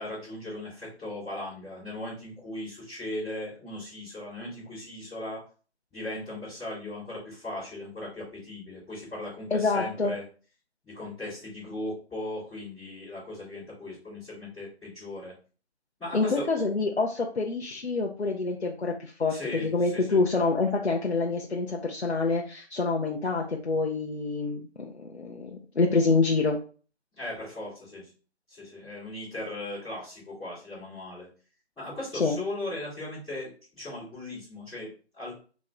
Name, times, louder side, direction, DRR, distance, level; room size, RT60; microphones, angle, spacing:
voice 1, 0.0-5.4 5.9-10.2 10.8-15.3 16.0-16.4 19.3-20.2 27.2-28.1 28.5-31.3 31.7-33.5 33.7-35.3, left 1 dB, ahead, -26 dB, 1.3 m, -38 dB
voice 2, 9.5-10.1 16.1-26.6 32.1-32.4, left 3 dB, 70° left, 0 dB, 0.7 m, -27 dB
3.0 x 3.0 x 3.7 m, 0.38 s
figure-of-eight pair, 165°, 34 cm